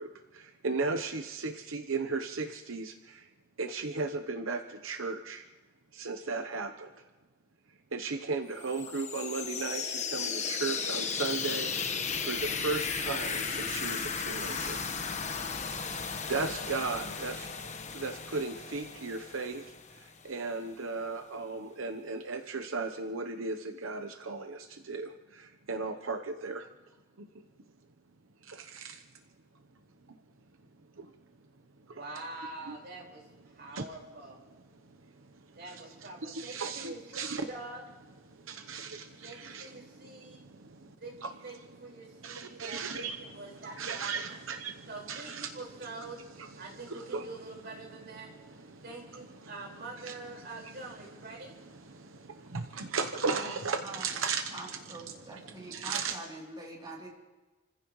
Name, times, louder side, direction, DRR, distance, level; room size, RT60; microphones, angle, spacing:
voice 1, 0.0-3.3 3.6-5.4 5.9-6.9 7.9-14.9 15.8-16.0 16.3-17.5 17.9-26.7 27.2-27.3 28.4-29.0 30.1-30.2 31.0-31.1 31.9-32.0 32.7-32.8 33.6-34.0 34.5-37.4 38.2-40.9 41.2-47.4 47.8-50.9 51.3-56.2, right 4 dB, 85° right, 7 dB, 0.9 m, -37 dB
sound 1, 8.6-20.3, left 5 dB, 35° left, 1.2 m, -35 dB
voice 2, 31.8-33.2 33.5-34.4 35.5-37.8 39.2-40.4 40.9-44.2 44.9-46.2 46.6-48.3 48.8-51.6, right 2 dB, 55° right, -1 dB, 4.9 m, -45 dB
voice 3, 54.5-57.1, right 2 dB, 20° right, -3 dB, 3.2 m, -44 dB
29.5 x 15.5 x 3.2 m, 1.2 s
head